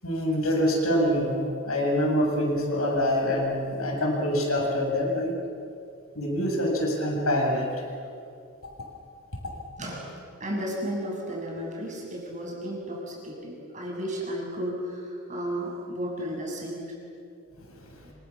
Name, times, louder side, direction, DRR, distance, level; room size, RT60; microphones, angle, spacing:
voice 1, 0.0-5.3 6.2-7.7, equal, 75° left, -1 dB, 7.4 m, -25 dB
voice 2, 10.4-16.8, equal, 35° right, -2 dB, 7.5 m, -33 dB
27.5 x 26.5 x 7.4 m, 2.5 s
head